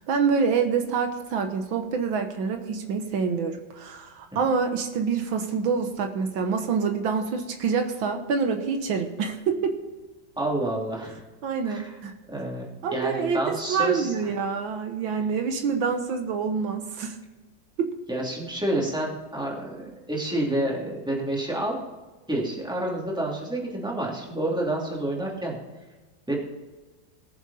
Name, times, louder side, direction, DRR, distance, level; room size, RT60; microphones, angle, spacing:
voice 1, 0.0-9.8 11.4-12.1 12.8-17.2 17.8-17.9, right 5 dB, 80° right, 6 dB, 1.8 m, -26 dB
voice 2, 10.4-11.2 11.6-12.0 12.3-14.1 18.1-21.8 22.3-25.6 26.3-26.4, right 1 dB, ahead, -3 dB, 2.7 m, -29 dB
18.5 x 7.5 x 4.2 m, 1.2 s
omnidirectional pair, 2.1 m